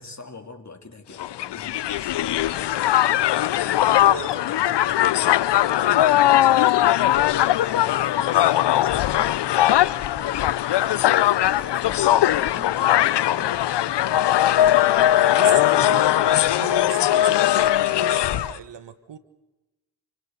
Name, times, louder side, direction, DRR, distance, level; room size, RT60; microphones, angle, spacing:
voice 1, 0.0-2.8 3.4-7.1 7.6-13.8, left 4 dB, 35° left, 3.0 m, -44 dB
Crowd, 1.2-18.6, left 13 dB, 60° left, 0.7 m, -20 dB
Subway metro underground, 2.6-18.6, equal, 5° right, 6.6 m, -52 dB
voice 2, 4.0-4.5 15.2-19.2, right 8 dB, 60° right, 1.6 m, -37 dB
sound 1, 8.3-17.6, right 1 dB, 30° right, 5.4 m, -47 dB
29.5 x 26.0 x 4.0 m
supercardioid pair, 45°, 47 cm